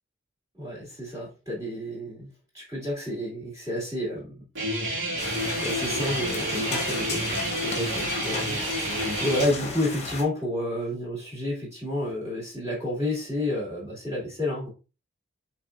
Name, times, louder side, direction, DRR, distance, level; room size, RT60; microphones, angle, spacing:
voice 1, 0.5-2.3 2.5-4.4 5.6-14.7, left 1 dB, 15° right, -7 dB, 1.9 m, -30 dB
Guitar, 4.5-9.5, right 1 dB, 65° right, 2.1 m, -29 dB
sound 1, 5.2-10.2, left 3 dB, 35° left, 0.9 m, -34 dB
4.8 x 3.3 x 2.4 m, 0.32 s
head